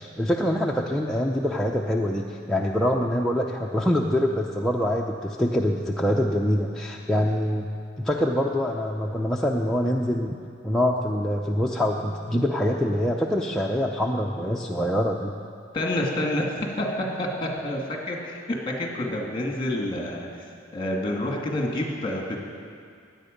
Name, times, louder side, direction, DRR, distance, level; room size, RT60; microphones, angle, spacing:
voice 1, 0.0-7.7 8.0-10.4 10.6-15.3, equal, 5° left, -2 dB, 0.5 m, -25 dB
voice 2, 15.7-16.9 17.2-20.3 20.7-22.4, left 1 dB, 25° left, 0 dB, 2.0 m, -28 dB
16.5 x 10.0 x 5.1 m, 2.2 s
head